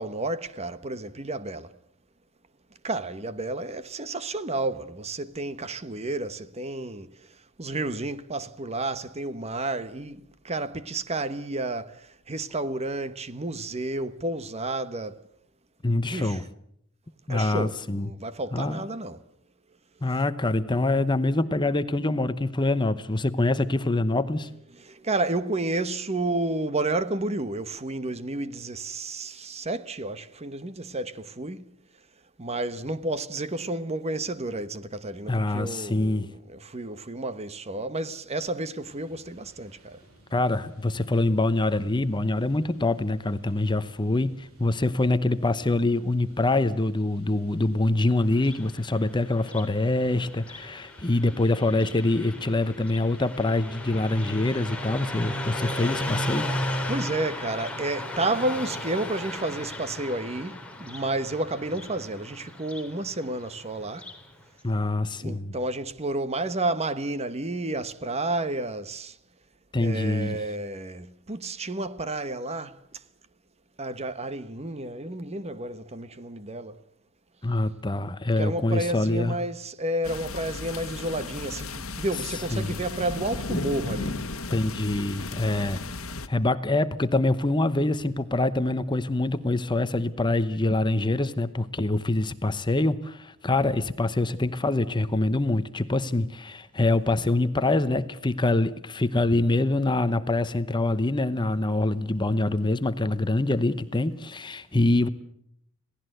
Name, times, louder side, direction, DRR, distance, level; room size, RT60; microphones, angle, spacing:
voice 1, 0.0-1.7 2.8-7.1 7.6-15.2 16.1-16.4 17.3-19.2 24.8-31.7 32.4-40.0 56.9-64.1 65.1-69.2 69.8-72.8 73.8-76.8 78.4-84.2, right 2 dB, 30° right, 1.2 m, -31 dB
voice 2, 15.8-16.4 17.3-18.1 18.5-18.8 20.0-24.5 35.3-36.3 40.3-56.5 64.6-65.5 69.7-70.4 77.4-79.4 82.5-82.7 84.5-85.8 86.3-105.1, left 2 dB, 20° left, 0.9 m, -25 dB
sound 1, 38.8-54.1, right 1 dB, 80° right, 8.0 m, -57 dB
Car passing by, 48.3-64.3, left 1 dB, 5° left, 3.4 m, -36 dB
sound 2, 80.0-86.3, left 3 dB, 70° left, 1.5 m, -35 dB
27.0 x 18.0 x 7.9 m
head